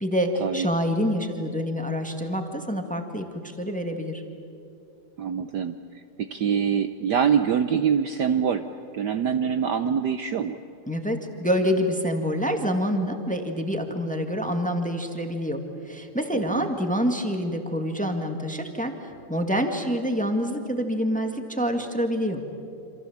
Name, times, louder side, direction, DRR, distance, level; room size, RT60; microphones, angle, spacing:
voice 1, 0.0-4.2 10.9-15.6 15.9-18.9 19.3-22.4, equal, 5° left, 4 dB, 1.5 m, -26 dB
voice 2, 5.2-5.8 6.2-8.6 8.9-10.6 16.3-16.7, right 7 dB, 65° right, 9 dB, 1.2 m, -24 dB
27.5 x 27.0 x 7.2 m, 2.7 s
omnidirectional pair, 2.3 m